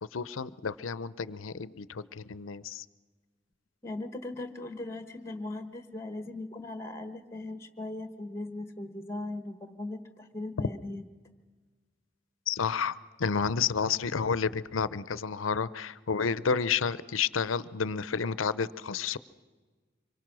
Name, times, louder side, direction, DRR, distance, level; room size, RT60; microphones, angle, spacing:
voice 1, 0.0-2.9 12.5-19.2, left 6 dB, 90° left, 17 dB, 0.7 m, -30 dB
voice 2, 3.8-11.0, left 2 dB, 15° left, 9 dB, 1.2 m, -39 dB
25.5 x 23.5 x 6.2 m, 1.4 s
head